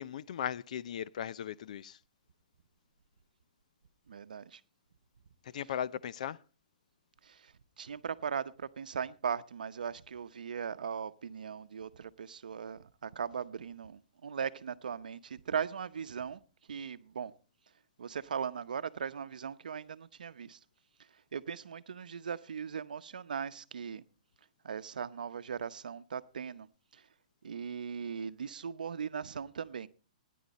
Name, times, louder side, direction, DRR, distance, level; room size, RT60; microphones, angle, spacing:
voice 1, 0.0-2.0 5.4-6.4, left 9 dB, 60° left, 0.6 m, -37 dB
voice 2, 4.1-4.6 7.2-7.5 7.8-16.4 16.7-17.3 18.0-20.6 21.3-24.0 24.6-26.7 26.9-27.0 27.4-29.9, right 7 dB, 85° right, 0.8 m, -39 dB
16.5 x 10.5 x 4.1 m
hypercardioid pair, 150°, 4 cm